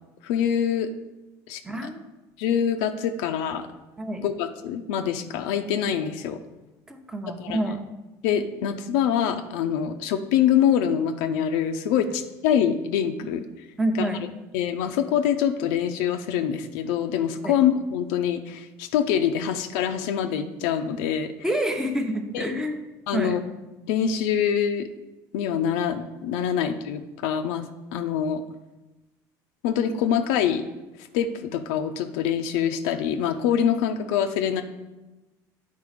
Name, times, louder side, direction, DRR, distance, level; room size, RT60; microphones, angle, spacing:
voice 1, 0.2-0.9 1.5-1.9 2.4-3.7 4.2-6.4 7.4-7.8 8.2-13.4 14.0-14.1 14.5-21.3 22.3-22.5 23.1-23.4 23.9-24.9 25.3-28.4 29.6-30.6 31.1-34.6, left 9 dB, 90° left, 5 dB, 0.5 m, -25 dB
voice 2, 1.6-2.1 4.0-4.2 6.9-7.8 13.8-14.2 17.4-17.5 21.4-22.8 23.1-23.4, right 1 dB, 5° right, 5 dB, 0.8 m, -27 dB
8.5 x 4.0 x 5.0 m, 1.1 s
cardioid pair, 125°, 8 cm